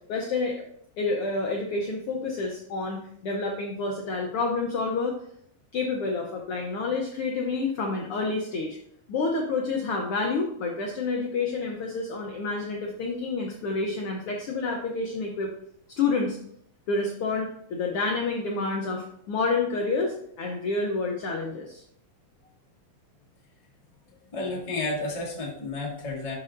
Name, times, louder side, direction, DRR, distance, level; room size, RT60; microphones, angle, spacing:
voice 1, 0.1-0.6 1.0-3.0 3.2-5.2 5.7-8.8 9.1-15.5 16.0-16.4 16.9-21.8, left 3 dB, 85° left, 0 dB, 1.2 m, -28 dB
voice 2, 24.3-26.3, left 2 dB, 25° left, -3 dB, 0.7 m, -31 dB
10.5 x 4.9 x 2.6 m, 0.67 s
omnidirectional pair, 3.6 m